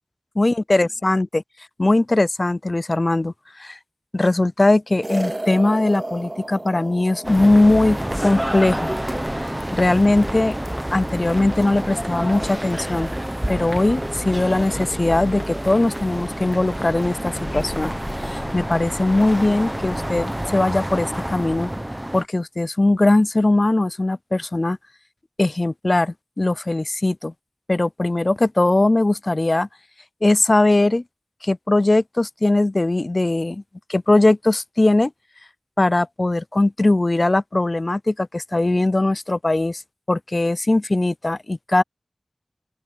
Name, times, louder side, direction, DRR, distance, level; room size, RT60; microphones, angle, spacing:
voice 1, 0.4-1.4 1.8-3.3 3.6-3.8 4.1-8.9 9.7-10.6 10.9-13.1 13.5-17.9 18.2-21.7 22.1-24.8 25.4-27.3 27.7-29.7 30.2-31.0 31.4-33.6 33.9-35.1 35.8-39.8 40.1-41.8, left 2 dB, 50° left, 0.3 m, -20 dB
sound 1, 5.0-9.5, right 1 dB, 35° right, 0.5 m, -34 dB
sound 2, 7.2-22.2, right 1 dB, 15° right, 0.9 m, -28 dB
sound 3, 17.4-21.6, left 3 dB, 85° left, 4.2 m, -41 dB
open air
wide cardioid pair, 50°, 0 cm